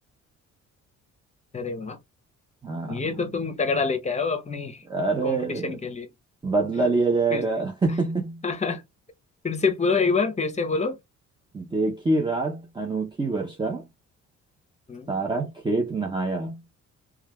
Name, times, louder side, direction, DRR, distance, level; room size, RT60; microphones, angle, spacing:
voice 1, 1.5-2.0 2.9-4.8 5.2-6.1 7.3-7.4 8.4-8.8 9.4-11.0 14.9-15.1, left 4 dB, 25° left, 0.8 m, -26 dB
voice 2, 2.6-3.1 4.8-5.8 6.4-8.4 11.5-13.9 15.1-16.6, right 3 dB, 15° right, 0.6 m, -26 dB
3.1 x 2.3 x 2.2 m
cardioid pair, 90°, 30 cm